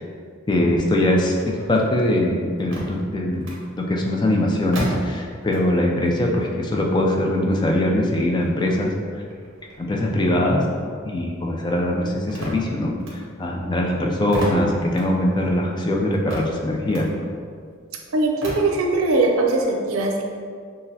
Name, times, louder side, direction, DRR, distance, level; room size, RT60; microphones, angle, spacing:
voice 1, 0.5-3.5 3.8-8.9 9.8-17.1, left 1 dB, 20° left, 0 dB, 0.3 m, -22 dB
sound 1, 0.8-5.9 6.2-11.1 11.4-19.6, right 1 dB, 70° right, 0.9 m, -37 dB
voice 2, 18.1-20.2, right 2 dB, 90° right, 2 dB, 0.5 m, -20 dB
6.0 x 2.0 x 2.7 m, 2.1 s
head